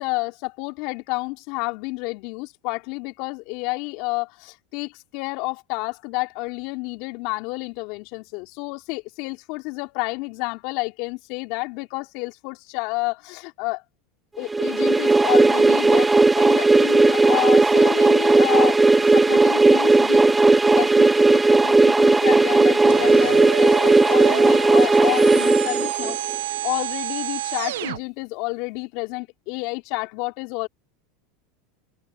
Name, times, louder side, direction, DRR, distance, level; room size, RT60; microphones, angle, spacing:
voice 1, 0.0-13.8 14.4-20.3 20.8-26.4 26.6-30.7, left 27 dB, 60° left, 3.8 m, -30 dB
sound 1, 14.5-26.3, right 3 dB, 10° right, 0.5 m, -16 dB
sound 2, 22.9-28.0, right 15 dB, 80° right, 1.3 m, -30 dB
hypercardioid pair, 95°, 0 cm